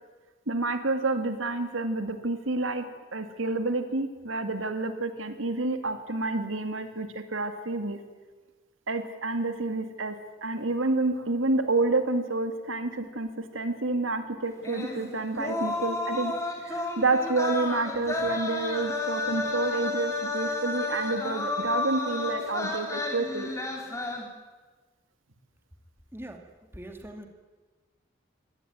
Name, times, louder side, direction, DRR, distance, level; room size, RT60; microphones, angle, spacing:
voice 1, 0.5-2.8 3.1-8.0 8.9-10.2 10.4-16.3 16.6-23.5, right 2 dB, 85° right, 8 dB, 2.3 m, -29 dB
sound 1, 14.6-24.2, left 2 dB, 15° left, 3.3 m, -31 dB
voice 2, 26.7-27.3, right 1 dB, 10° right, 4 dB, 2.3 m, -41 dB
23.5 x 18.0 x 9.3 m, 1.3 s
head